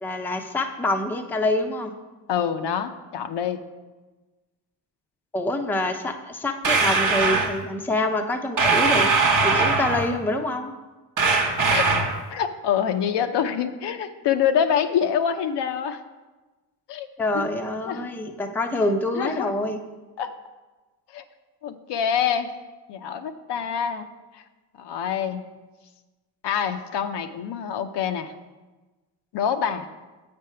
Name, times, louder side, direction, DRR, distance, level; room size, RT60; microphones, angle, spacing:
voice 1, 0.0-1.9 5.3-9.1 9.4-10.7 17.2-19.8, left 2 dB, 5° left, 4 dB, 0.5 m, -26 dB
voice 2, 2.3-3.6 11.7-12.0 12.3-16.0 16.9-17.1 17.3-17.4 17.9-18.1 19.1-19.5 20.2-20.3 21.1-21.2 21.6-22.5 22.9-24.1 24.3-24.4 24.8-25.4 26.4-28.3 29.3-29.9, left 8 dB, 65° left, 8 dB, 0.6 m, -26 dB
sound 1, 6.6-7.5 8.6-10.1 11.2-12.2, right 4 dB, 45° right, 0.9 m, -21 dB
7.4 x 3.5 x 5.6 m, 1.2 s
cardioid pair, 75°, 44 cm